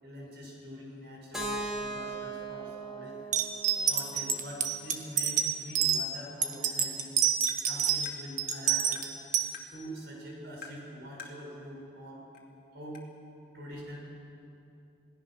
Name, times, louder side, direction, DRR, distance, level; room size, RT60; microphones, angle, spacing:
voice 1, 0.0-3.2 3.8-7.1 7.6-9.0 9.7-12.3 12.7-13.1 13.5-14.0, equal, 60° right, -2 dB, 6.7 m, -44 dB
Keyboard (musical), 1.3-5.2, right 2 dB, 5° right, 3.4 m, -39 dB
sound 1, 3.3-6.0 6.4-8.1 8.4-9.5, right 8 dB, 40° right, 1.5 m, -27 dB
Tap, 7.5-7.6 8.1-8.2 8.9-9.1 9.5-9.7 10.6-10.8 11.2-11.4 12.3-12.4 12.9-13.0, left 5 dB, 55° left, 2.4 m, -46 dB
28.0 x 18.0 x 6.4 m, 2.8 s
head